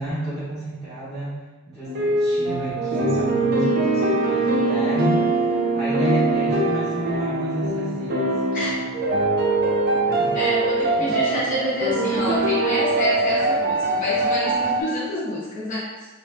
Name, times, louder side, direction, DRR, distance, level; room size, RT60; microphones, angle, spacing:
voice 1, 0.0-1.3 1.7-8.4 10.2-10.4 11.0-11.2, right 1 dB, 5° left, -14 dB, 1.1 m, -30 dB
sound 1, 1.8-14.8, right 2 dB, 50° right, 0.6 m, -22 dB
voice 2, 8.5-8.9 10.3-15.9, left 1 dB, 40° left, -8 dB, 0.9 m, -27 dB
3.0 x 2.5 x 3.3 m, 1.2 s
head